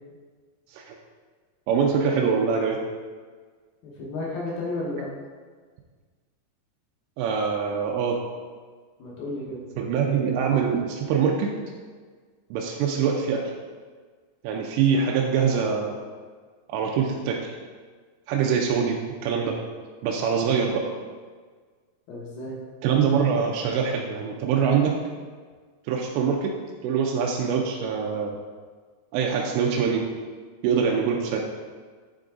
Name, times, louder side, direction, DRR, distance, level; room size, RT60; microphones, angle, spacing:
voice 1, 1.7-2.8 7.2-8.2 9.8-11.5 12.5-13.5 14.4-16.0 16.7-17.5 18.3-19.6 20.0-20.8 22.8-24.9 25.9-26.5 26.8-28.4 29.1-30.0 30.6-31.5, right 6 dB, 90° right, 0 dB, 2.8 m, -24 dB
voice 2, 3.8-5.1 9.0-9.6 22.1-22.6, left 2 dB, 70° left, -4 dB, 2.4 m, -32 dB
9.1 x 3.9 x 3.6 m, 1.5 s
omnidirectional pair, 5.0 m